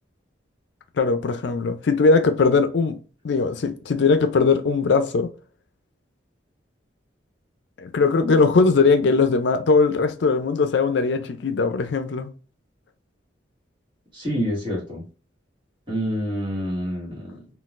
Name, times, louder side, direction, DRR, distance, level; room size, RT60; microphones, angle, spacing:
voice 1, 1.0-3.0 3.2-5.3 7.8-12.3, left 4 dB, 65° left, 0.4 m, -20 dB
voice 2, 14.1-15.0 15.9-17.4, equal, 25° right, 1.4 m, -27 dB
3.9 x 2.3 x 2.4 m
head